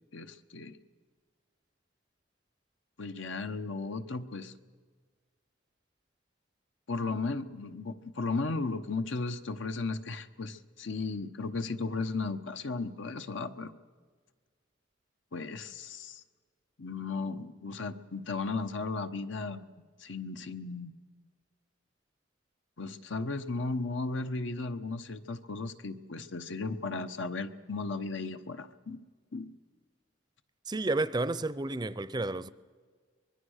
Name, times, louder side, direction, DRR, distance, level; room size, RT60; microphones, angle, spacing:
voice 1, 0.1-0.8 3.0-4.5 6.9-13.7 15.3-16.2 16.8-19.7 20.0-20.9 22.8-29.0 29.3-29.5, left 3 dB, 80° left, 1.1 m, -35 dB
voice 2, 30.7-32.5, right 2 dB, 20° right, 0.5 m, -31 dB
24.5 x 20.5 x 6.5 m
head